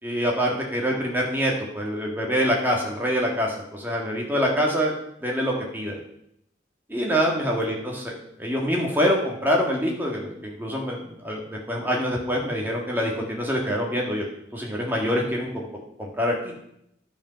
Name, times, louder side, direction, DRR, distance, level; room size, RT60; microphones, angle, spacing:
voice 1, 0.0-4.9 5.2-6.0 6.9-8.1 8.4-14.2 14.5-15.7 16.0-16.5, equal, 10° right, -1 dB, 1.9 m, -25 dB
11.0 x 5.3 x 5.7 m, 0.76 s
head